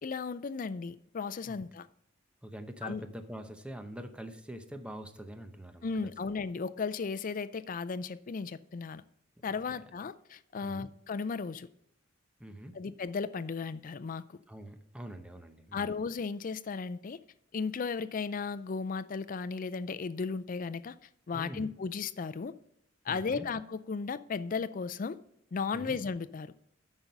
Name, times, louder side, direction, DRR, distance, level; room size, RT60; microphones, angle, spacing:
voice 1, 0.0-1.9 2.8-3.0 5.8-9.0 9.4-11.7 12.7-14.4 15.7-17.2 17.5-20.9 21.3-22.5 23.1-25.2 25.5-26.5, left 5 dB, 45° left, 15 dB, 0.4 m, -35 dB
voice 2, 2.4-5.9 9.4-9.8 10.6-10.9 12.4-12.8 14.5-15.9 21.3-21.7 23.1-23.5 25.7-26.0, right 1 dB, 5° right, 7 dB, 0.8 m, -44 dB
9.6 x 6.0 x 5.3 m, 0.74 s
head